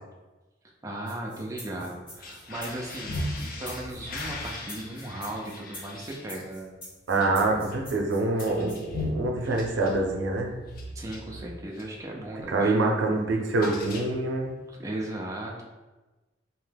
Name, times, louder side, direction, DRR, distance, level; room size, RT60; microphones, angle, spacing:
voice 1, 0.8-6.8 7.2-7.6 10.9-12.9 14.7-15.6, right 1 dB, 15° right, -2 dB, 0.4 m, -37 dB
sound 1, 1.1-8.8, left 1 dB, 30° left, 1.1 m, -45 dB
sound 2, 2.1-12.0 12.4-12.7 12.9-14.5, left 1 dB, 50° left, 0.4 m, -38 dB
voice 2, 7.1-10.5 12.5-14.5, right 2 dB, 80° right, 1 dB, 0.5 m, -25 dB
2.7 x 2.2 x 3.2 m, 1.2 s
head